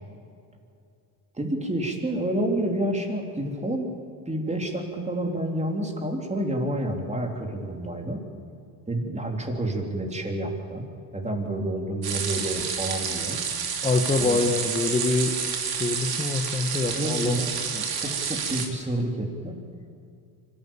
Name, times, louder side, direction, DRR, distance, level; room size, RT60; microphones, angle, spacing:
voice 1, 1.4-3.9 4.3-8.2 8.9-10.8 11.1-13.4 14.2-14.4 16.9-19.6, right 1 dB, 15° right, 2 dB, 3.5 m, -29 dB
sound 1, 12.0-18.7, right 6 dB, 55° right, 3.1 m, -29 dB
voice 2, 13.8-15.3 15.8-17.4, left 3 dB, 15° left, 3 dB, 1.4 m, -25 dB
25.0 x 13.5 x 8.8 m, 2.5 s
cardioid pair, 100°, 43 cm